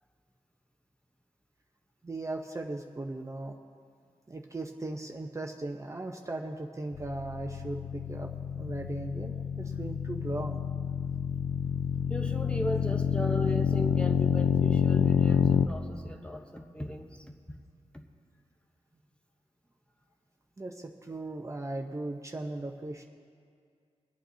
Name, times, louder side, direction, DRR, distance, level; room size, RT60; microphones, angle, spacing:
voice 1, 2.0-3.6 4.3-8.3 8.6-10.6 20.6-23.0, right 2 dB, 25° right, 2 dB, 0.7 m, -38 dB
sound 1, 6.9-15.7, left 8 dB, 70° left, 0.4 m, -28 dB
voice 2, 12.1-17.2, left 1 dB, 10° left, 3 dB, 1.0 m, -36 dB
26.5 x 8.9 x 2.8 m, 2.2 s
cardioid pair, 75°, 12 cm